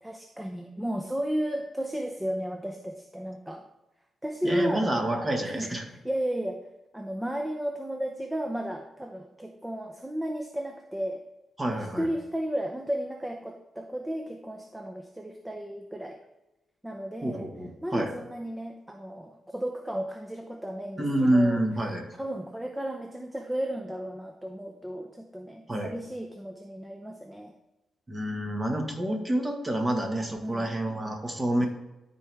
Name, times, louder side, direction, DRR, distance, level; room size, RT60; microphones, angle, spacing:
voice 1, 0.0-3.6 4.2-4.9 5.4-6.6 6.9-11.2 11.7-16.2 16.8-17.5 17.8-21.6 22.2-27.5 30.4-30.7 31.6-31.7, equal, 10° right, 4 dB, 0.7 m, -33 dB
voice 2, 4.4-5.8 11.6-12.1 17.2-18.1 21.0-22.1 25.7-25.9 28.1-31.7, right 1 dB, 25° right, 2 dB, 1.7 m, -28 dB
13.0 x 4.6 x 3.5 m, 0.99 s
cardioid pair, 75°, 0 cm